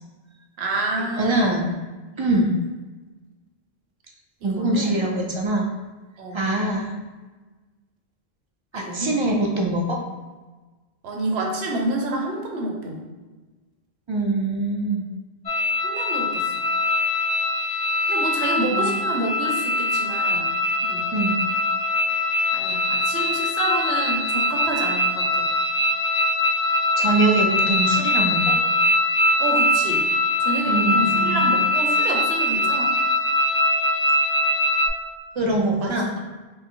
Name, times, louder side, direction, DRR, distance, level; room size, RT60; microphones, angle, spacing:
voice 1, 0.6-1.5 2.1-2.3 4.4-5.0 6.2-6.5 8.7-9.3 11.0-13.0 15.8-16.6 18.1-21.1 22.5-25.5 29.4-30.0 30.4-32.9 35.8-35.9, right 2 dB, 85° right, 0 dB, 0.9 m, -28 dB
voice 2, 1.1-1.8 2.2-2.6 4.4-5.7 6.3-7.0 8.7-10.0 14.1-15.1 18.7-19.0 21.1-21.4 27.0-28.6 30.7-31.6 35.4-36.1, right 2 dB, 50° right, 0 dB, 0.3 m, -23 dB
sound 1, 15.5-34.9, left 1 dB, 35° left, 0.4 m, -22 dB
4.1 x 2.0 x 3.7 m, 1.3 s
omnidirectional pair, 1.0 m